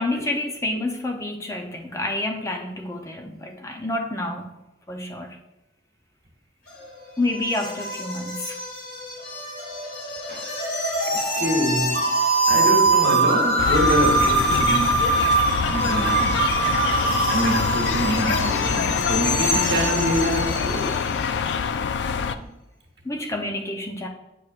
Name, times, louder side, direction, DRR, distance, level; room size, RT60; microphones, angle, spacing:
voice 1, 0.0-4.5 4.9-5.4 7.2-8.6 23.0-24.1, left 2 dB, 15° left, 0.5 m, -28 dB
sound 1, 6.7-21.3, right 2 dB, 55° left, 1.9 m, -24 dB
voice 2, 11.1-12.2 12.5-15.1 15.7-16.6 17.3-21.1 22.2-22.5, equal, 60° right, 1.2 m, -26 dB
sound 2, 13.6-22.4, left 6 dB, 70° left, 0.3 m, -25 dB
8.3 x 6.1 x 2.4 m
head